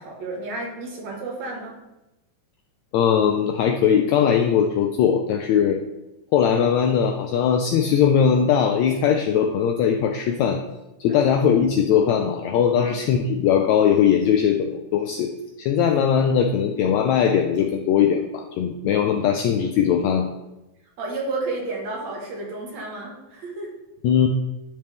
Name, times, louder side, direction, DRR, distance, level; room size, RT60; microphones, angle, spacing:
voice 1, 0.0-1.8 11.1-11.2 12.8-13.0 21.0-23.7, right 2 dB, 60° right, -2 dB, 2.6 m, -31 dB
voice 2, 2.9-5.8 6.3-10.6 11.0-15.3 15.6-20.3 24.0-24.3, left 8 dB, 85° left, 4 dB, 1.6 m, -20 dB
12.0 x 4.4 x 3.5 m, 0.97 s
omnidirectional pair, 3.7 m